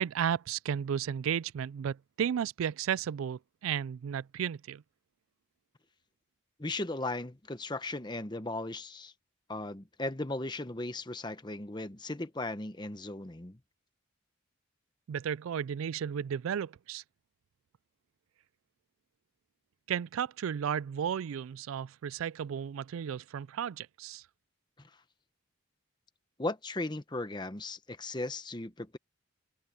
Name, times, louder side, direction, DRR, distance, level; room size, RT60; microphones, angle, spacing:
voice 1, 0.0-4.8 15.1-17.0 19.9-24.2, right 8 dB, 80° right, 0.3 m, -33 dB
voice 2, 6.6-9.1 9.5-13.6 24.8-24.9 26.4-29.0, left 2 dB, 20° left, 0.9 m, -37 dB
head